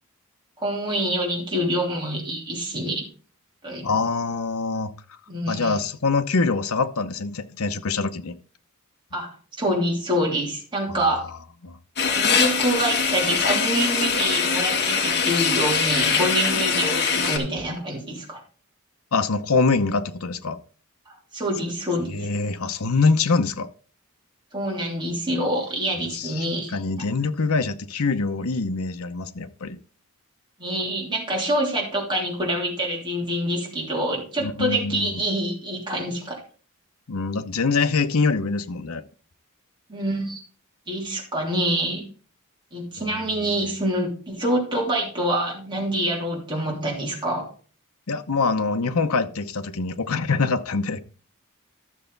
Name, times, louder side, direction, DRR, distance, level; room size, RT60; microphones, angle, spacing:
voice 1, 0.6-3.0 3.6-3.8 5.3-5.8 9.1-11.2 12.1-18.4 21.1-22.3 24.5-27.0 30.6-36.4 39.9-40.4 40.9-42.0 42.7-47.5, right 1 dB, 20° right, 3.1 m, -26 dB
voice 2, 3.8-4.9 5.5-8.4 11.6-11.8 19.1-20.6 22.0-23.7 26.1-26.5 26.7-29.8 34.4-35.2 37.1-39.0 43.0-43.5 48.1-51.0, left 4 dB, 85° left, 0.8 m, -24 dB
sound 1, 12.0-17.4, left 5 dB, 50° left, 1.8 m, -22 dB
12.5 x 6.9 x 3.9 m
head